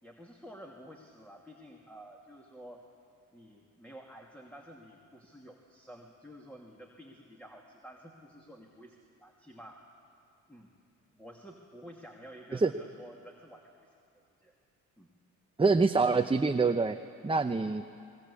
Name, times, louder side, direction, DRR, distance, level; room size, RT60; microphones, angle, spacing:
voice 1, 0.0-2.8 3.3-9.8 10.5-10.7 11.1-13.9 14.4-14.5 15.0-15.1, equal, 5° left, 0 dB, 2.6 m, -51 dB
voice 2, 15.6-17.0 17.2-17.8, right 4 dB, 15° right, 8 dB, 0.8 m, -25 dB
21.0 x 21.0 x 8.5 m, 2.4 s
supercardioid pair, 70°, 37 cm